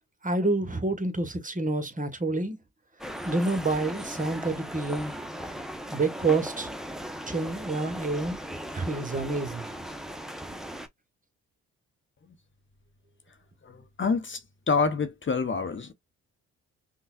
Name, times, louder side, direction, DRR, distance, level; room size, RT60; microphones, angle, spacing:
voice 1, 0.2-2.6 3.2-5.1 5.9-6.7 7.3-8.4 8.7-9.7, right 3 dB, 20° right, 1.2 m, -28 dB
sound 1, 3.0-10.9, equal, ahead, 0.8 m, -38 dB
voice 2, 13.6-14.4 14.7-15.9, left 5 dB, 35° left, 0.9 m, -27 dB
5.4 x 2.3 x 2.3 m
hypercardioid pair, 45°, 35 cm